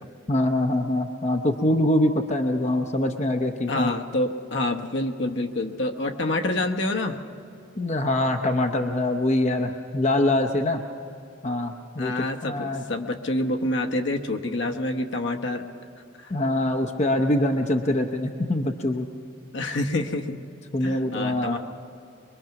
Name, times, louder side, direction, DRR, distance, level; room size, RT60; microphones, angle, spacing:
voice 1, 0.3-3.9 7.8-10.8 11.4-12.1 12.4-12.8 16.3-19.1 20.7-21.6, left 1 dB, 35° left, 4 dB, 0.8 m, -24 dB
voice 2, 3.7-7.2 12.0-15.6 16.2-16.3 19.5-20.4 20.8-21.6, left 2 dB, 60° left, 4 dB, 1.1 m, -27 dB
23.5 x 22.5 x 5.9 m, 2.7 s
head